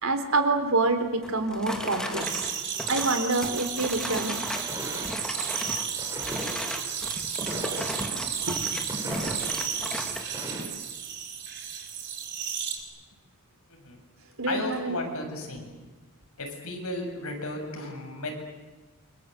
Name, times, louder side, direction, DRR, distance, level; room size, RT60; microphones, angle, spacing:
voice 1, 0.0-2.5 2.9-4.3 8.4-8.5 14.4-15.0, right 3 dB, 70° right, 7 dB, 3.7 m, -26 dB
sound 1, 1.2-4.7 5.0-5.9 6.2-10.3, equal, 5° left, 2.7 m, -36 dB
sound 2, 2.2-12.8, right 8 dB, 50° right, 4.7 m, -33 dB
sound 3, 4.5-5.2 5.9-6.6 7.4-8.1 8.9-9.5 10.3-10.6, right 1 dB, 15° right, 7.2 m, -36 dB
voice 2, 13.7-14.0 14.5-15.7 16.4-18.4, left 2 dB, 80° left, 2 dB, 7.3 m, -34 dB
28.5 x 25.0 x 8.2 m, 1.2 s
head